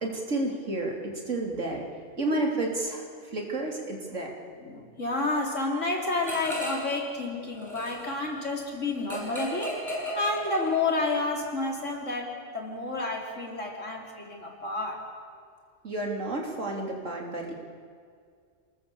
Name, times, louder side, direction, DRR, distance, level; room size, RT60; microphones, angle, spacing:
voice 1, 0.0-1.8 2.2-3.0 3.3-4.4 15.8-17.5, right 2 dB, 85° right, 0 dB, 3.6 m, -31 dB
voice 2, 4.6-9.7 10.2-15.0, left 3 dB, 90° left, 0 dB, 3.9 m, -30 dB
sound 1, 6.2-7.0 7.3-11.1, equal, 15° left, 7.0 m, -35 dB
28.0 x 20.0 x 7.1 m, 2.1 s
omnidirectional pair, 1.2 m